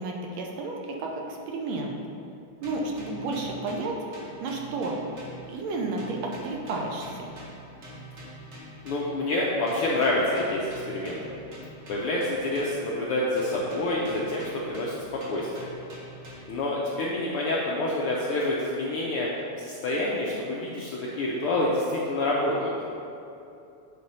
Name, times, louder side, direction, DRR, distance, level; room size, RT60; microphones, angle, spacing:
voice 1, 0.0-2.0 2.6-4.0 4.4-5.0 5.5-7.3, right 3 dB, 75° right, 0 dB, 1.8 m, -32 dB
sound 1, 2.6-5.7 6.0-9.3 9.7-13.0 13.4-16.7, equal, 45° right, 1.9 m, -45 dB
voice 2, 8.8-11.2 11.9-15.0 15.3-15.7 16.5-19.3 19.6-22.7, left 1 dB, 75° left, -4 dB, 1.3 m, -27 dB
8.7 x 4.2 x 5.4 m, 2.7 s
omnidirectional pair, 3.3 m